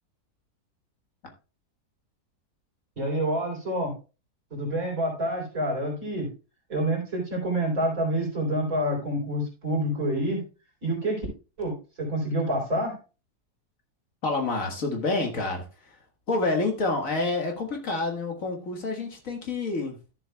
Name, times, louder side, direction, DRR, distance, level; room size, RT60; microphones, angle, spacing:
voice 1, 3.0-3.9 4.5-6.3 6.7-10.4 10.8-11.3 11.6-13.0, right 1 dB, 55° right, -1 dB, 4.2 m, -27 dB
voice 2, 14.2-16.0 16.3-20.1, left 3 dB, 55° left, 2 dB, 2.0 m, -28 dB
13.0 x 7.3 x 2.3 m, 0.31 s
omnidirectional pair, 1.7 m